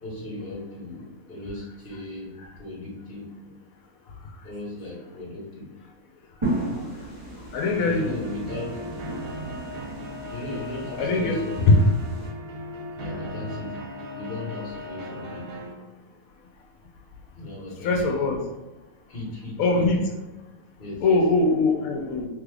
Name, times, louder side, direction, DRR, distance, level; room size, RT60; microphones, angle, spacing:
voice 1, 0.0-3.5 4.4-5.7 7.8-8.8 10.3-11.8 12.9-13.9 14.1-15.5 17.3-18.3 19.1-19.9 20.8-21.2, left 1 dB, 40° left, -5 dB, 1.3 m, -36 dB
sound 1, 6.4-12.3, right 2 dB, 25° right, 0.9 m, -35 dB
voice 2, 7.5-8.2 11.0-11.4 17.8-18.4 19.6-20.0 21.0-22.3, left 3 dB, 75° left, 1 dB, 1.0 m, -22 dB
sound 2, 7.7-15.7, left 1 dB, 60° right, 0.6 m, -37 dB
3.1 x 2.4 x 3.4 m, 1.1 s
omnidirectional pair, 1.5 m